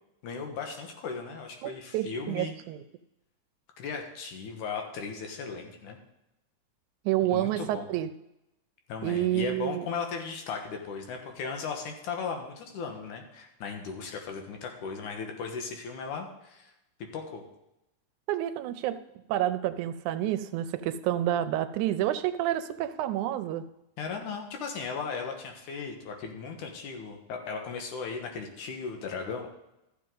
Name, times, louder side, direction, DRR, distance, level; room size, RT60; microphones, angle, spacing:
voice 1, 0.2-2.5 3.8-6.0 7.3-7.9 8.9-16.7 17.1-17.4 24.0-29.5, left 5 dB, 80° left, 3 dB, 2.7 m, -37 dB
voice 2, 1.6-2.8 7.1-8.1 9.0-9.9 18.3-19.0 19.3-23.6, right 12 dB, 80° right, 12 dB, 1.9 m, -29 dB
13.5 x 7.4 x 3.8 m, 0.88 s
omnidirectional pair, 3.5 m